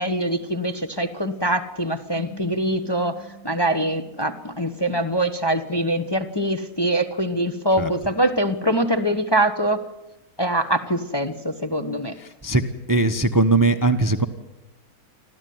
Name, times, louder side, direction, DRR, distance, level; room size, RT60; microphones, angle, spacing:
voice 1, 0.0-9.8 10.4-12.1, right 1 dB, 20° left, 6 dB, 1.0 m, -23 dB
sound 1, 2.1-5.3, equal, 35° left, 3.9 m, -44 dB
voice 2, 12.9-14.3, right 2 dB, 15° right, 9 dB, 0.9 m, -19 dB
26.0 x 14.5 x 9.4 m, 0.95 s
omnidirectional pair, 1.6 m